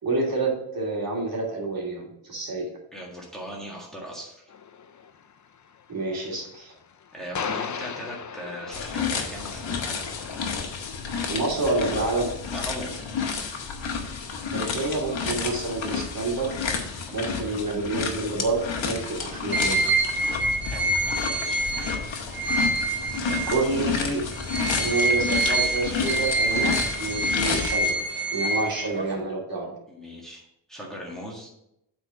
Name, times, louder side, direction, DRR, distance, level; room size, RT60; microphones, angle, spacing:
voice 1, 0.0-2.7 5.9-6.7 11.3-12.3 14.5-16.5 17.1-19.8 23.5-24.2 24.8-27.9 28.3-29.7, right 2 dB, 50° right, -3 dB, 2.6 m, -28 dB
voice 2, 2.9-4.5 7.1-9.9 12.5-13.3 17.0-17.3 20.6-21.0 21.3-21.6 29.9-31.5, equal, ahead, -3 dB, 1.8 m, -39 dB
sound 1, 4.5-11.9, left 7 dB, 40° left, 0.6 m, -38 dB
sound 2, 8.7-27.9, left 5 dB, 80° left, 1.4 m, -31 dB
sound 3, 19.5-23.9 24.3-29.2, right 2 dB, 25° right, 1.0 m, -26 dB
8.4 x 4.3 x 5.7 m, 0.81 s
wide cardioid pair, 125°, 46 cm